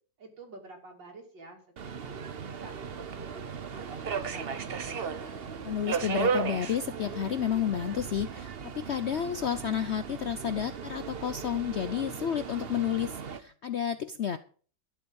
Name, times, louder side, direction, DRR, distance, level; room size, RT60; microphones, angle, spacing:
voice 1, 0.2-3.4 3.7-5.4, right 2 dB, 75° right, 1 dB, 3.7 m, -50 dB
Subway metro underground, 1.8-13.4, right 6 dB, 45° right, 0.8 m, -36 dB
voice 2, 5.6-14.4, left 9 dB, 90° left, 12 dB, 0.5 m, -31 dB
12.0 x 7.6 x 6.9 m, 0.42 s
omnidirectional pair, 2.0 m